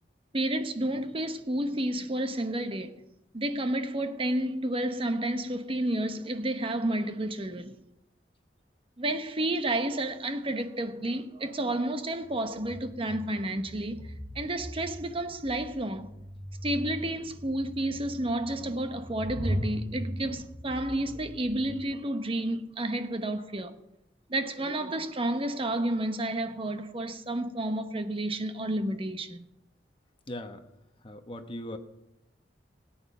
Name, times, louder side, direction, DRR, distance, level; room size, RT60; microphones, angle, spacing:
voice 1, 0.3-3.0 3.3-7.7 9.0-16.1 16.6-23.7 24.3-29.4, right 1 dB, 30° right, 1.0 m, -31 dB
sound 1, 11.2-11.3 12.2-21.8, equal, 15° right, 5.0 m, -39 dB
voice 2, 30.3-30.6 31.0-31.8, left 1 dB, 30° left, 1.1 m, -39 dB
17.5 x 8.8 x 5.5 m
head